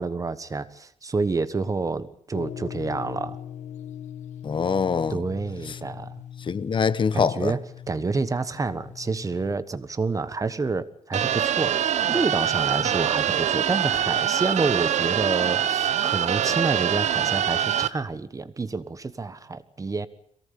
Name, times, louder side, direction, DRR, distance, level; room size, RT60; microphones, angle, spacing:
voice 1, 0.0-3.4 5.1-6.2 7.1-7.6 7.9-20.1, right 4 dB, 30° right, 1.3 m, -28 dB
sound 1, 2.3-9.5, left 9 dB, 85° left, 1.4 m, -40 dB
voice 2, 4.4-5.2 5.7-5.8 6.4-7.5, left 6 dB, 45° left, 1.1 m, -24 dB
sound 2, 11.1-17.9, right 10 dB, 75° right, 1.0 m, -24 dB
23.0 x 18.0 x 8.6 m
cardioid pair, 110°, 12 cm